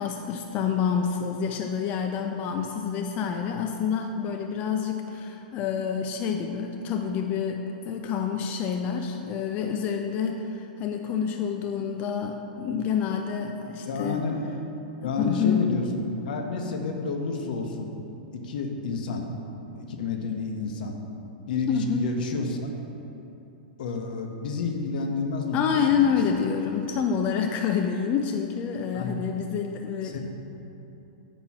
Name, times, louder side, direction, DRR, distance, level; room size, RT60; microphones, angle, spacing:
voice 1, 0.0-14.3 15.0-15.7 21.7-22.1 25.5-30.2, left 7 dB, 30° left, 3 dB, 0.4 m, -28 dB
voice 2, 13.9-14.4 15.0-17.9 18.4-19.2 19.7-20.9 21.5-22.7 23.8-25.6 25.9-26.2 28.9-29.2 30.0-30.2, left 4 dB, 70° left, 3 dB, 0.9 m, -30 dB
8.6 x 3.0 x 5.8 m, 3.0 s
hypercardioid pair, 140°, 5 cm